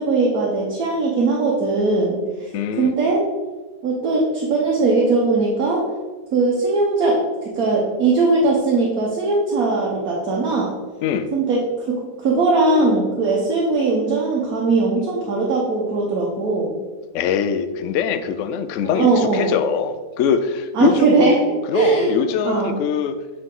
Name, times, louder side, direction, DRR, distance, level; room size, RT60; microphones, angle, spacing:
voice 1, 0.0-2.5 2.8-3.2 3.8-5.9 6.3-10.7 11.3-16.7 18.9-19.5 20.7-21.4 21.7-22.1 22.4-22.8, right 3 dB, 65° right, -3 dB, 1.4 m, -19 dB
voice 2, 2.5-2.9 11.0-11.3 17.1-21.4 21.7-23.2, left 7 dB, 70° left, 10 dB, 0.7 m, -22 dB
8.1 x 4.0 x 3.7 m, 1.3 s
omnidirectional pair, 1.7 m